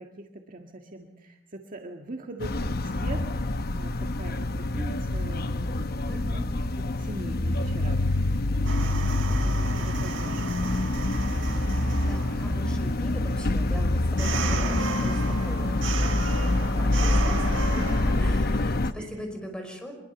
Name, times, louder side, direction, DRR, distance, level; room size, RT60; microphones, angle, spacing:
voice 1, 0.0-3.2 3.7-6.4 6.8-8.2 8.6-10.4 18.9-19.1, right 2 dB, 45° right, 2 dB, 1.7 m, -42 dB
sound 1, 2.4-18.9, left 2 dB, 55° left, 1.0 m, -26 dB
voice 2, 6.0-6.5 12.1-19.9, equal, 5° left, 3 dB, 5.6 m, -40 dB
sound 2, 8.7-18.3, right 4 dB, 75° right, 1.7 m, -35 dB
24.5 x 22.5 x 7.1 m, 0.91 s
head